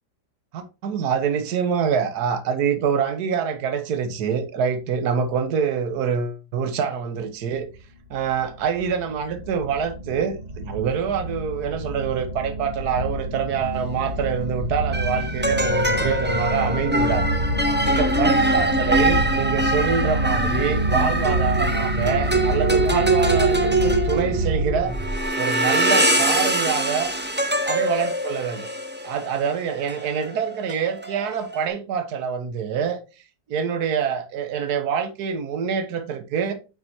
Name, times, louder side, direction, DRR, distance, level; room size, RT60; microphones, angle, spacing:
voice 1, 0.5-7.7 8.1-17.3 17.9-24.9 25.4-27.1 27.6-28.7 29.0-33.0 33.5-36.5, right 7 dB, 70° right, 1.6 m, -25 dB
sound 1, 7.8-25.3, equal, 30° right, 1.1 m, -27 dB
sound 2, 13.8-14.0 14.9-31.7, right 1 dB, 10° right, 0.7 m, -23 dB
9.3 x 5.6 x 3.0 m
omnidirectional pair, 1.8 m